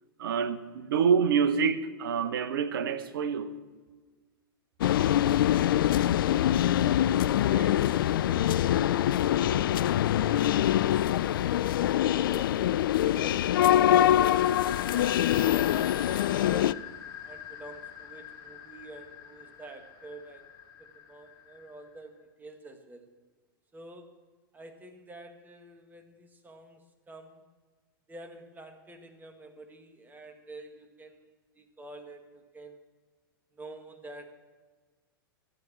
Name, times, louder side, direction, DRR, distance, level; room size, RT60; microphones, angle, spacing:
voice 1, 0.2-3.5, right 6 dB, 70° right, 1.0 m, -27 dB
sound 1, 4.8-16.7, left 12 dB, 65° left, 0.4 m, -24 dB
voice 2, 7.0-10.7 11.2-12.6 13.0-16.9 17.2-20.5 20.8-23.1 23.7-24.2 24.5-27.4 28.1-32.8 33.5-34.3, right 2 dB, 15° right, 1.7 m, -49 dB
sound 2, 14.4-21.9, left 9 dB, 35° left, 2.7 m, -43 dB
13.0 x 9.3 x 7.4 m
hypercardioid pair, 100°, 12 cm